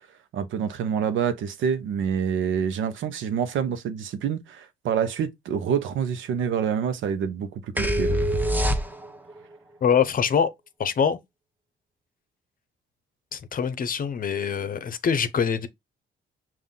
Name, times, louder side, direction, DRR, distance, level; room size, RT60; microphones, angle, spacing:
voice 1, 0.3-8.2, right 7 dB, 75° right, 0.8 m, -27 dB
sound 1, 7.8-9.3, equal, 10° right, 1.0 m, -24 dB
voice 2, 9.8-10.5 10.8-11.2 13.3-15.7, left 7 dB, 45° left, 0.7 m, -24 dB
5.5 x 2.6 x 3.7 m
cardioid pair, 90°, 20 cm